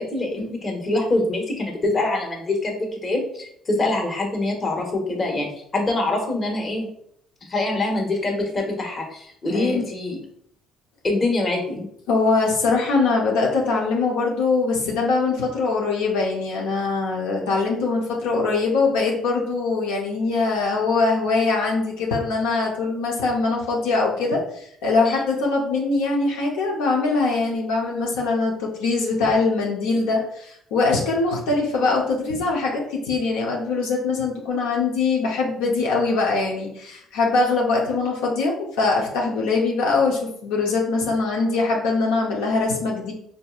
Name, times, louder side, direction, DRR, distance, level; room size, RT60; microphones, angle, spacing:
voice 1, 0.0-6.9 7.5-10.2 11.0-11.8 25.0-25.2, left 2 dB, 35° left, 1 dB, 1.2 m, -24 dB
voice 2, 12.1-43.1, left 3 dB, 90° left, -2 dB, 0.7 m, -22 dB
4.9 x 2.7 x 2.4 m, 0.68 s
supercardioid pair, 80°, 0 cm